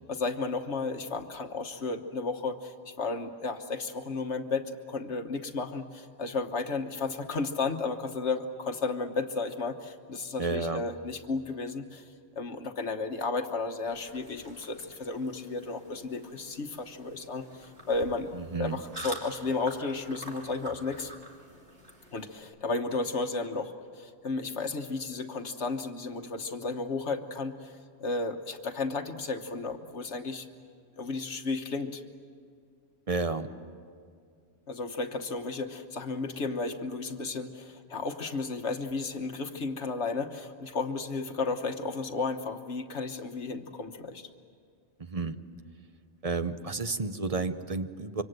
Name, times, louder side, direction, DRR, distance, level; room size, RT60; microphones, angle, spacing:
voice 1, 0.1-18.3 18.6-21.1 22.1-30.5 31.0-32.0 34.7-44.3, left 3 dB, 70° left, 6 dB, 1.4 m, -33 dB
voice 2, 10.4-10.8 18.3-18.8 33.1-33.5 45.0-45.4 46.2-48.2, right 3 dB, 35° right, 9 dB, 0.9 m, -31 dB
sound 1, 13.8-22.4, right 1 dB, 55° right, 3.3 m, -47 dB
26.0 x 24.5 x 8.0 m, 2.2 s
omnidirectional pair, 1.2 m